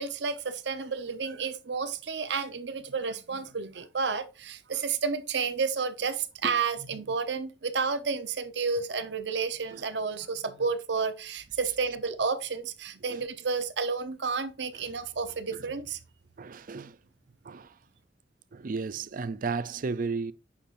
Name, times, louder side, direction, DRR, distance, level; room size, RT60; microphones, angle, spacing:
voice 1, 0.0-16.0, right 5 dB, 70° right, 0.9 m, -31 dB
voice 2, 16.4-17.0 17.5-17.7 18.5-20.3, right 4 dB, 50° right, 0.4 m, -33 dB
8.6 x 6.1 x 2.6 m
head